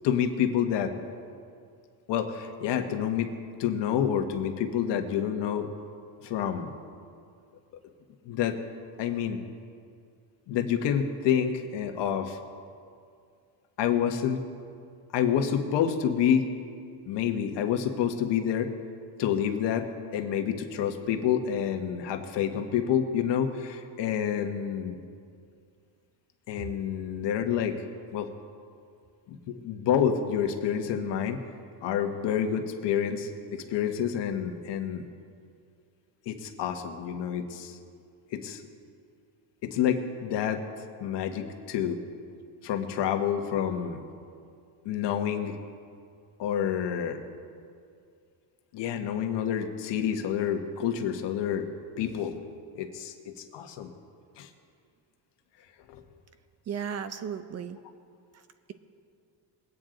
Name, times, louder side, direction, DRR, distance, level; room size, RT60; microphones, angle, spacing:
voice 1, 0.0-0.9 2.1-3.3 3.6-5.7 6.2-6.7 8.2-8.6 9.0-9.4 10.5-12.4 13.8-14.4 15.1-16.5 17.1-18.7 19.2-25.0 26.5-27.8 28.1-28.3 29.3-31.4 31.8-35.0 36.2-37.8 38.3-38.6 39.6-40.6 41.0-42.0 42.6-44.0 44.8-45.5 46.4-47.2 48.7-51.7 52.0-52.4 52.7-53.9 54.4-54.5 55.9-56.0, left 8 dB, 65° left, 5 dB, 1.3 m, -28 dB
voice 2, 56.7-57.8, right 7 dB, 35° right, 11 dB, 0.6 m, -34 dB
22.0 x 9.1 x 3.9 m, 2.3 s
cardioid pair, 130°, 47 cm